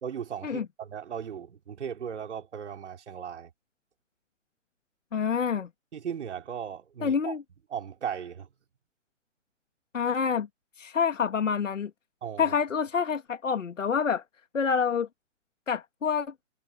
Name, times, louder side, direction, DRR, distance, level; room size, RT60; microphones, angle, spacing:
voice 1, 0.0-3.5 5.9-7.4 7.7-8.5 12.2-12.6, right 8 dB, 65° right, 3.3 m, -37 dB
voice 2, 5.1-5.7 7.0-7.4 9.9-10.5 10.8-11.9 12.4-14.2 14.5-15.1 15.7-16.3, left 6 dB, 80° left, 1.8 m, -27 dB
hypercardioid pair, 145°, 37 cm